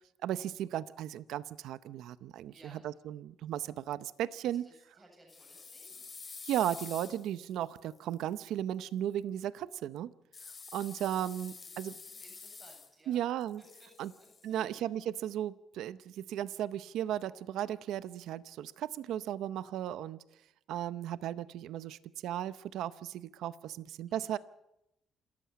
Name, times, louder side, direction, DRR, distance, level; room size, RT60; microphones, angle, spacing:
voice 1, 0.2-2.5 2.8-4.7 6.4-10.1 10.7-11.9 13.1-13.6 14.0-14.1 14.4-20.2 20.7-24.4, right 11 dB, 85° right, 15 dB, 0.7 m, -35 dB
voice 2, 2.5-2.9 4.4-6.0 11.1-13.2 13.8-13.9 14.2-14.8 24.1-24.4, right 1 dB, 20° right, 1 dB, 7.8 m, -60 dB
sound 1, 5.3-8.3 10.3-13.1 13.4-14.5, left 4 dB, 35° left, 3.8 m, -48 dB
28.0 x 14.0 x 8.4 m, 0.87 s
cardioid pair, 90°, 0 cm